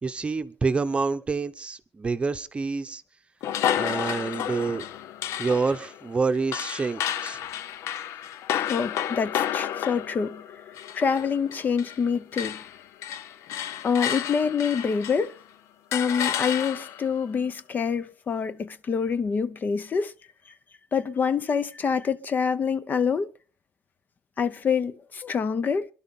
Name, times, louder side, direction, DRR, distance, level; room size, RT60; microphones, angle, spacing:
voice 1, 0.0-3.0 3.7-4.8 5.4-7.4, right 4 dB, 25° right, 0.8 m, -27 dB
sound 1, 3.4-12.1 12.3-15.4 15.9-17.1, left 10 dB, 90° left, 0.6 m, -31 dB
voice 2, 8.7-10.4 10.9-12.6 13.8-15.4 15.9-20.1 20.9-23.3 24.4-25.9, left 6 dB, 40° left, 0.7 m, -26 dB
26.0 x 11.5 x 3.7 m
cardioid pair, 135°, 5 cm